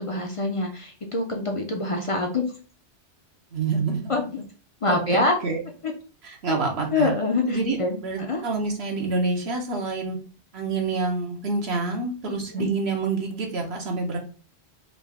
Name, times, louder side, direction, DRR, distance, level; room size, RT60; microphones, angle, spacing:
voice 1, 0.0-2.5 4.1-4.4 4.8-5.4 5.8-5.9 6.5-6.6 6.9-8.4 12.3-12.7, left 3 dB, 40° left, 2 dB, 0.5 m, -25 dB
voice 2, 3.5-4.1 4.9-5.6 6.2-7.1 7.5-10.2 10.5-14.2, right 3 dB, 70° right, 1 dB, 1.1 m, -27 dB
3.8 x 2.3 x 3.4 m, 0.38 s
omnidirectional pair, 1.1 m